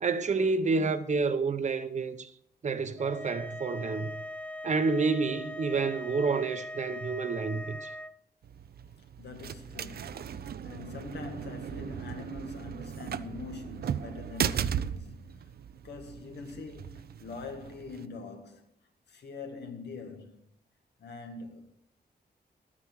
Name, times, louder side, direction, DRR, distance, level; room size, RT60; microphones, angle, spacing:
voice 1, 0.0-2.3 2.6-4.1 4.6-7.9, right 4 dB, 45° right, 0.8 m, -29 dB
sound 1, 3.0-8.1, left 1 dB, 10° left, 0.4 m, -41 dB
sound 2, 8.4-18.1, right 8 dB, 65° right, 0.5 m, -37 dB
voice 2, 9.2-15.5 15.8-18.6 19.1-20.4 21.0-21.7, left 4 dB, 85° left, 2.0 m, -43 dB
12.5 x 9.6 x 4.7 m
wide cardioid pair, 160°, 17 cm